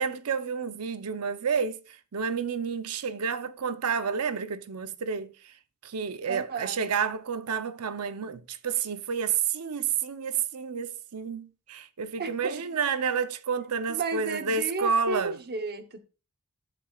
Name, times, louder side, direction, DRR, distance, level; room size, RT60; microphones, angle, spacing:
voice 1, 0.0-5.6 5.8-15.4, right 6 dB, 85° right, 0.7 m, -30 dB
voice 2, 6.3-6.8 12.2-12.6 13.9-16.0, right 4 dB, 45° right, 0.9 m, -33 dB
13.0 x 7.3 x 2.4 m
head